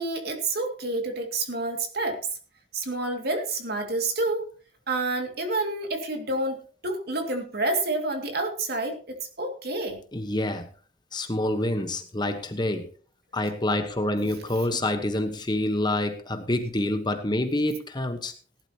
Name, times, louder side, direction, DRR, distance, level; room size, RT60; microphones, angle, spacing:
voice 1, 0.0-2.2 2.7-4.5 4.9-6.6 6.8-10.0, right 2 dB, 55° right, 2.4 m, -28 dB
voice 2, 10.1-10.7 11.1-12.9 13.3-18.3, left 1 dB, 20° left, 1.2 m, -27 dB
18.0 x 11.5 x 2.9 m
head